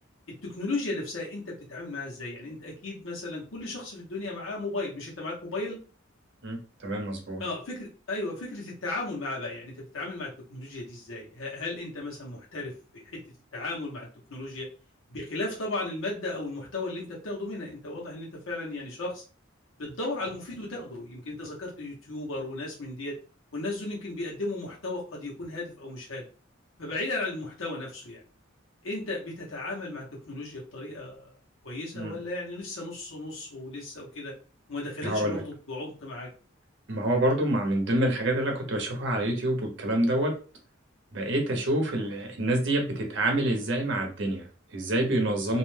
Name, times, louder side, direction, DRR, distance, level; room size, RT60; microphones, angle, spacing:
voice 1, 0.4-5.8 7.4-13.2 13.5-14.7 15.1-19.2 19.8-23.2 23.5-26.3 26.8-28.2 28.8-31.3 31.6-34.3 34.7-36.3, left 2 dB, 90° left, -4 dB, 0.9 m, -35 dB
voice 2, 6.4-7.4 31.9-32.2 35.0-35.4 36.9-40.3 41.1-45.6, right 1 dB, 60° right, 3 dB, 0.7 m, -27 dB
2.5 x 2.1 x 3.2 m, 0.37 s
head